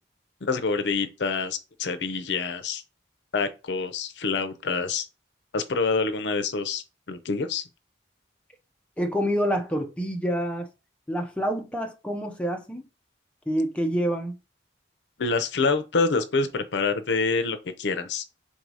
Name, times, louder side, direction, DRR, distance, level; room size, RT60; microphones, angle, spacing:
voice 1, 0.4-2.8 3.3-5.1 5.5-7.6 15.2-18.2, left 4 dB, 70° left, 0.6 m, -26 dB
voice 2, 9.0-10.7 11.1-12.9 13.5-14.4, equal, 5° left, 0.5 m, -27 dB
3.9 x 2.7 x 4.7 m
head